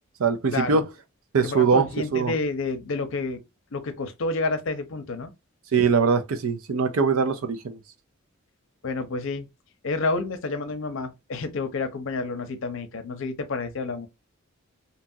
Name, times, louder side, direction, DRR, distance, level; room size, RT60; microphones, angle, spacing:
voice 1, 0.2-0.9 1.3-1.9 2.1-2.3 5.7-7.8, right 5 dB, 85° right, 0.5 m, -22 dB
voice 2, 1.4-3.4 3.7-5.3 8.8-9.5 9.8-14.1, left 3 dB, 65° left, 0.6 m, -29 dB
2.8 x 2.3 x 2.7 m
head